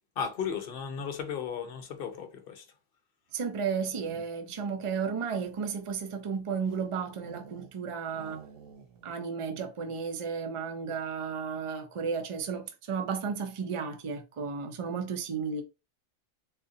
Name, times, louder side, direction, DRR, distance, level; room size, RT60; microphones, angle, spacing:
voice 1, 0.2-2.6, left 7 dB, 50° left, 0.8 m, -35 dB
voice 2, 3.3-8.4 9.0-15.6, right 6 dB, 55° right, 0.3 m, -33 dB
sound 1, 3.6-4.6 5.2-7.8 8.1-9.2 9.4-9.5 9.8-10.2, right 6 dB, 85° right, 1.1 m, -52 dB
4.0 x 2.6 x 2.5 m
omnidirectional pair, 1.4 m